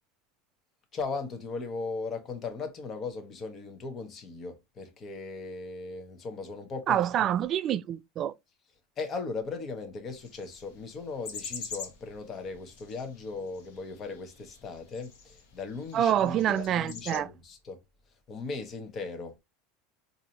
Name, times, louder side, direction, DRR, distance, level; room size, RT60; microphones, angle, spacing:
voice 1, 0.9-7.3 9.0-17.8 18.3-19.4, left 4 dB, 30° left, 0.9 m, -38 dB
voice 2, 6.9-8.3 15.9-17.3, right 10 dB, 35° right, 0.3 m, -26 dB
sound 1, 10.1-17.2, left 6 dB, 80° left, 1.1 m, -46 dB
4.0 x 2.7 x 2.8 m
supercardioid pair, 135°, 0 cm